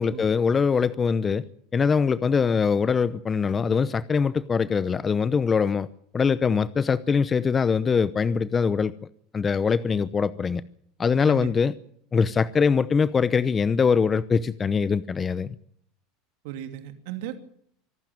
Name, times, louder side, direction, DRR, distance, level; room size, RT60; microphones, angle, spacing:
voice 1, 0.0-1.4 1.7-5.9 6.1-8.9 9.3-10.6 11.0-11.7 12.1-15.5, left 5 dB, 25° left, 16 dB, 0.8 m, -23 dB
voice 2, 16.4-17.4, right 12 dB, 70° right, 7 dB, 2.7 m, -35 dB
25.0 x 12.0 x 9.4 m, 0.66 s
hypercardioid pair, 95°, 0 cm